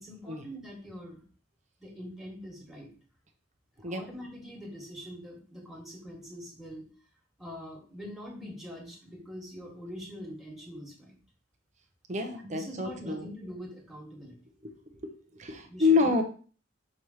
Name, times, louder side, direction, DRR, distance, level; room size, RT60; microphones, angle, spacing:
voice 1, 0.0-1.2 1.8-2.9 3.8-6.9 7.4-11.2 12.4-14.4 15.6-16.1, equal, ahead, -3 dB, 1.9 m, -43 dB
voice 2, 12.1-13.2 14.6-14.7 15.0-16.2, left 4 dB, 40° right, 4 dB, 1.0 m, -27 dB
6.3 x 3.2 x 5.6 m, 0.39 s
head